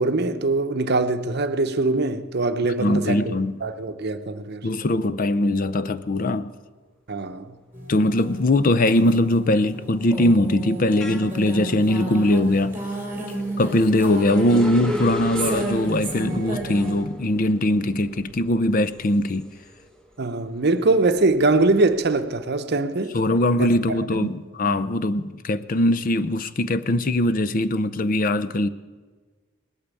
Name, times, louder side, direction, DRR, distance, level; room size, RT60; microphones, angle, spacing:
voice 1, 0.0-3.4 3.6-4.7 7.1-7.6 20.2-23.2 23.6-24.4, right 3 dB, 55° right, 0.8 m, -23 dB
voice 2, 2.8-3.6 4.6-6.5 7.9-12.8 13.6-19.5 23.1-28.7, left 1 dB, 45° left, 0.5 m, -21 dB
sound 1, 7.7-16.9, right 2 dB, 10° right, 3.0 m, -33 dB
sound 2, 8.3-8.5 8.9-20.1 20.5-22.3, equal, 5° left, 1.5 m, -36 dB
19.0 x 8.6 x 8.4 m
head